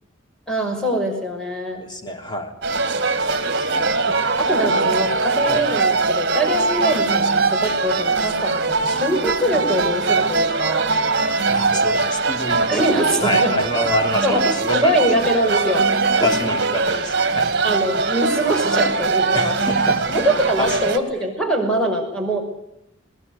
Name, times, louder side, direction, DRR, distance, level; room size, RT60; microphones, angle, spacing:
voice 1, 0.5-1.9 4.1-10.9 12.7-13.6 14.2-16.3 17.6-19.6 20.1-22.4, right 1 dB, 5° left, 2 dB, 6.2 m, -23 dB
voice 2, 1.8-2.5 3.7-4.2 5.4-5.6 11.5-15.0 16.2-17.5 19.3-20.3 20.6-20.8, left 1 dB, 20° left, 4 dB, 3.4 m, -28 dB
sound 1, 2.6-21.0, right 3 dB, 50° right, 2.4 m, -21 dB
21.5 x 21.5 x 9.9 m, 0.83 s
head